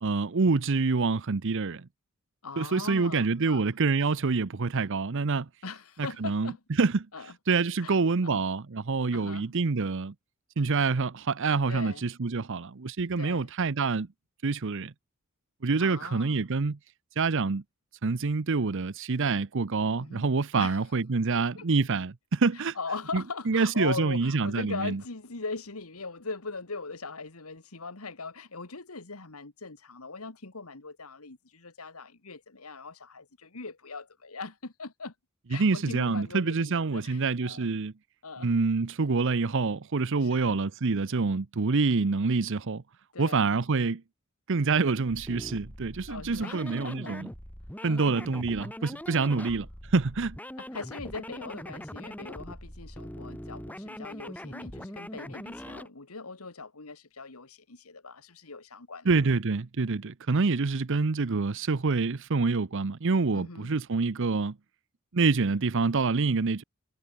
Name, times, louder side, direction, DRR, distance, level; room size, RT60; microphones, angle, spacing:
voice 1, 0.0-1.9 2.6-5.5 6.2-6.5 6.8-7.1 7.5-10.1 10.6-14.1 14.4-14.9 15.6-16.8 17.2-17.6 18.0-22.8 23.1-25.0 35.5-37.9 38.4-42.8 43.2-44.0 44.5-47.3 47.8-50.4 59.1-64.5 65.1-66.6, right 4 dB, 60° right, 0.7 m, -26 dB
voice 2, 2.4-3.8 5.6-6.6 7.1-7.3 7.8-8.4 9.1-9.5 11.7-12.0 13.2-13.5 15.8-16.4 20.0-20.2 20.6-20.9 21.3-21.7 22.5-35.1 35.5-37.7 38.2-38.6 40.2-40.6 43.1-43.6 46.1-47.2 47.8-48.1 49.3-49.6 50.6-59.1 63.3-63.7, left 4 dB, 85° left, 2.1 m, -40 dB
sound 1, 45.0-55.9, equal, 5° left, 4.7 m, -42 dB
head